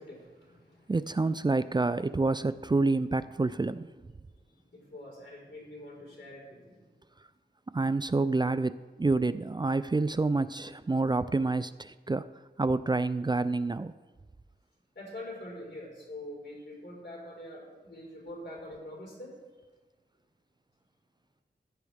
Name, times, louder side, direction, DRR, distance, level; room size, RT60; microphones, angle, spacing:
voice 1, 0.0-0.9 4.4-6.8 14.9-19.3, left 1 dB, 80° left, -4 dB, 4.6 m, -45 dB
voice 2, 0.9-3.9 7.7-12.3 12.6-13.9, right 3 dB, 25° right, 14 dB, 0.3 m, -28 dB
15.0 x 10.5 x 3.5 m, 1.3 s
wide cardioid pair, 70°, 18 cm